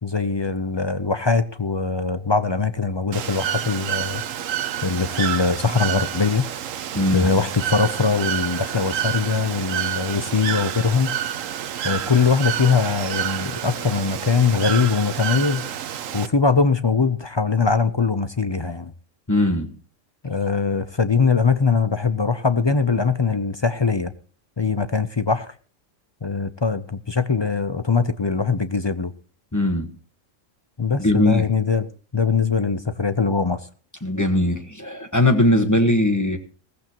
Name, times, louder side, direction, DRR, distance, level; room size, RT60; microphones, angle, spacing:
voice 1, 0.0-4.2 4.8-6.5 7.1-11.2 11.8-15.7 16.1-18.9 20.2-24.1 24.6-25.5 26.2-29.1 30.8-33.6, left 5 dB, 35° left, 12 dB, 0.4 m, -21 dB
Bird / Water, 3.1-16.3, right 10 dB, 85° right, 1.2 m, -29 dB
voice 2, 6.9-7.3 19.3-19.7 29.5-29.9 31.0-31.5 34.0-36.4, left 1 dB, 15° left, 5 dB, 1.3 m, -20 dB
17.0 x 15.0 x 3.0 m, 0.40 s
omnidirectional pair, 1.3 m